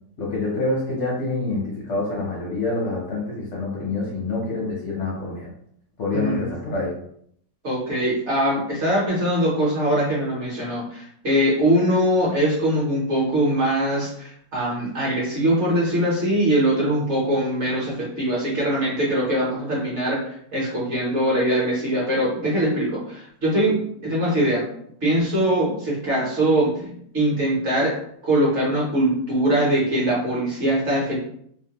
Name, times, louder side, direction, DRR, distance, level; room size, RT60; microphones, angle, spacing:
voice 1, 0.2-5.5 6.0-6.9, left 2 dB, 65° left, -4 dB, 0.7 m, -26 dB
voice 2, 6.1-6.5 7.6-24.6 25.0-28.0 28.2-31.2, right 1 dB, 50° right, -5 dB, 1.0 m, -22 dB
2.9 x 2.1 x 2.8 m, 0.68 s
omnidirectional pair, 1.8 m